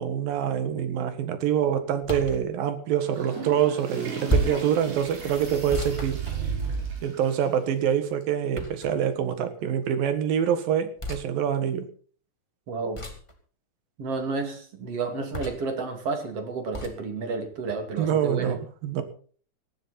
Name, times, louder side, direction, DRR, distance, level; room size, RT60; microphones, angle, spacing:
voice 1, 0.0-6.2 7.0-11.9 18.0-19.0, right 9 dB, 70° right, 10 dB, 3.3 m, -26 dB
sound 1, 2.0-2.4 4.3-4.7 5.7-6.9 8.5-9.1 11.0-11.2 12.9-13.3 15.3-15.7 16.7-17.0, right 1 dB, 10° left, 1.4 m, -30 dB
Water / Toilet flush, 2.9-7.9 8.2-8.3 9.0-9.1 10.4-10.5, right 5 dB, 90° right, 5.8 m, -41 dB
sound 2, 3.0-7.0, right 6 dB, 15° right, 5.0 m, -35 dB
voice 2, 12.7-13.1 14.0-18.6, right 4 dB, 45° right, 6 dB, 3.2 m, -31 dB
18.0 x 13.0 x 4.2 m, 0.43 s
omnidirectional pair, 4.4 m